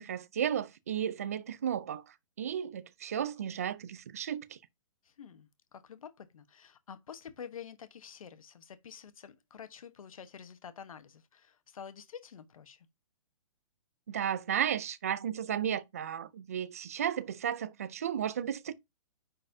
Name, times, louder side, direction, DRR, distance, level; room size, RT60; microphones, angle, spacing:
voice 1, 0.0-2.0 2.4-4.6 14.1-18.7, right 9 dB, 25° right, 0.3 m, -34 dB
voice 2, 5.0-12.9, left 7 dB, 70° left, 1.1 m, -48 dB
9.8 x 4.1 x 2.7 m
hypercardioid pair, 175°, 18 cm